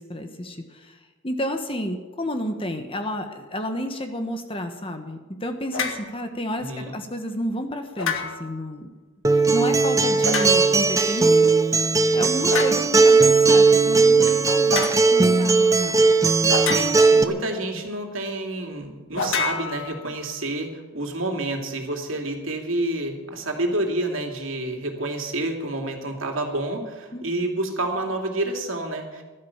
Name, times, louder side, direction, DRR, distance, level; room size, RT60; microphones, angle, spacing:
voice 1, 0.0-8.9 9.3-11.6 12.1-16.1 17.1-17.4 27.1-27.2, equal, 25° left, 6 dB, 1.4 m, -31 dB
sound 1, 5.7-6.1 8.0-8.6 10.2-10.9 12.5-12.9 14.7-15.0 16.5-17.2 19.1-20.3, left 4 dB, 65° left, 2.0 m, -28 dB
voice 2, 6.6-7.0 16.7-29.2, right 2 dB, 70° right, 2 dB, 2.8 m, -29 dB
Acoustic guitar, 9.2-17.2, right 4 dB, 15° right, 0.7 m, -18 dB
16.0 x 12.5 x 7.4 m, 1.3 s
head